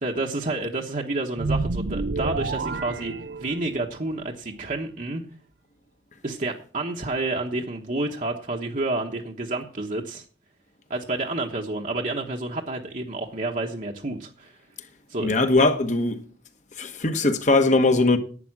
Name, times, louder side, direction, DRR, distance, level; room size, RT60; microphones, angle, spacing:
voice 1, 0.0-5.2 6.2-10.2 10.9-14.6 15.1-15.4, right 2 dB, 45° right, 1.2 m, -29 dB
sound 1, 1.4-3.9, right 3 dB, 80° right, 0.6 m, -29 dB
voice 2, 15.2-16.2 16.8-18.2, left 2 dB, 45° left, 1.2 m, -20 dB
11.0 x 9.3 x 6.0 m
head